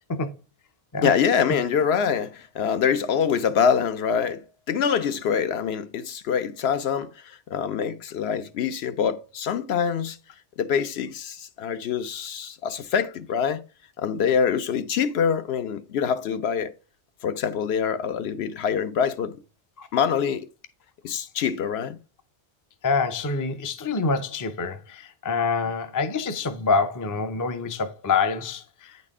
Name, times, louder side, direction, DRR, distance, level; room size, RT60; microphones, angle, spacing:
voice 1, 1.0-10.2 10.6-13.6 14.0-16.7 17.2-19.4 19.9-20.5 21.0-22.0, left 7 dB, 65° left, 0.8 m, -25 dB
voice 2, 22.8-29.0, left 4 dB, 25° left, 0.4 m, -26 dB
8.9 x 4.1 x 3.5 m
omnidirectional pair, 1.2 m